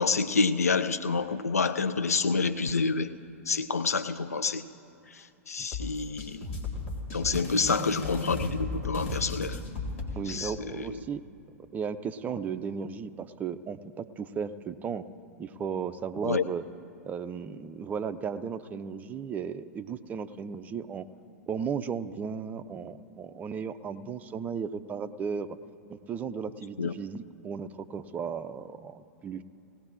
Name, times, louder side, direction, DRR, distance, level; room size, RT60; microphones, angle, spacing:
voice 1, 0.0-3.1 3.5-4.6 5.1-6.5 7.1-9.6 10.3-10.9 16.2-16.4 26.8-26.9, left 4 dB, 80° left, 10 dB, 0.4 m, -28 dB
sound 1, 5.7-10.1, left 2 dB, 60° left, 2.6 m, -34 dB
voice 2, 10.2-11.2 11.7-15.1 15.4-16.6 17.0-21.1 21.5-25.6 25.9-29.4, right 6 dB, 20° right, 11 dB, 0.4 m, -35 dB
19.0 x 17.0 x 2.5 m, 2.6 s
figure-of-eight pair, 100°, 8 cm